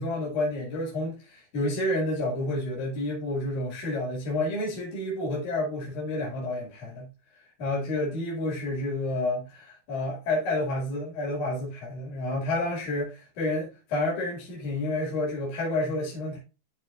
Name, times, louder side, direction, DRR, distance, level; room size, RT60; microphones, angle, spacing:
voice 1, 0.0-7.1 7.6-16.4, left 2 dB, 70° left, 3.9 m, -30 dB
13.0 x 4.6 x 2.5 m
omnidirectional pair, 3.7 m